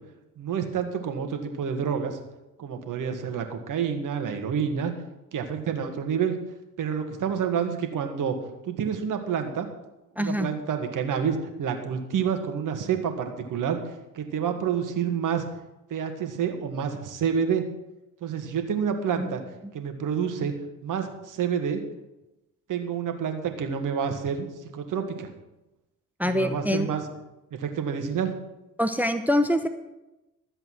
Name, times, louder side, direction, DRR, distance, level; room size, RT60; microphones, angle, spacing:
voice 1, 0.4-2.2 2.6-4.9 5.3-6.4 6.8-8.4 8.6-9.7 10.2-13.8 14.1-15.4 15.9-17.6 18.2-19.4 19.7-20.5 20.8-21.8 22.7-25.3 26.2-27.0 27.6-28.3, right 7 dB, 55° right, 6 dB, 2.0 m, -28 dB
voice 2, 10.2-10.5 19.2-19.3 26.2-26.9 28.8-29.7, left 1 dB, 5° right, 9 dB, 0.9 m, -24 dB
13.5 x 7.8 x 6.1 m, 0.97 s
hypercardioid pair, 55°, 39 cm